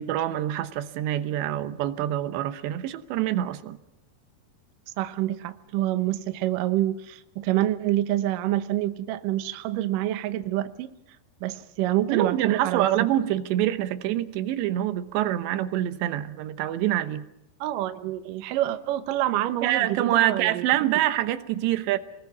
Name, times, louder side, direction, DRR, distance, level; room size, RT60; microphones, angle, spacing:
voice 1, 0.0-3.8 12.1-17.3 19.6-22.0, right 13 dB, 90° right, 11 dB, 3.3 m, -26 dB
voice 2, 5.0-10.9 11.4-12.9 17.6-20.6, right 14 dB, 70° right, 10 dB, 2.2 m, -27 dB
28.5 x 20.5 x 6.1 m, 0.88 s
omnidirectional pair, 4.9 m